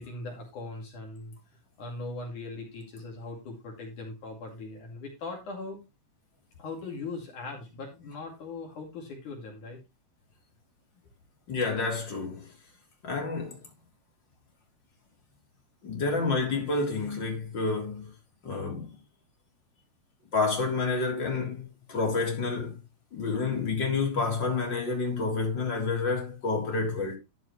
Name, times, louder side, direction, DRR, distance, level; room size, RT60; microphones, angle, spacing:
voice 1, 0.0-5.8 6.6-9.8, left 3 dB, 60° left, 3.7 m, -40 dB
voice 2, 11.5-12.5 13.0-13.6 15.8-18.1 18.4-18.9 20.3-22.7 23.1-27.2, left 4 dB, 30° left, 3.9 m, -29 dB
12.5 x 7.4 x 3.2 m
omnidirectional pair, 4.1 m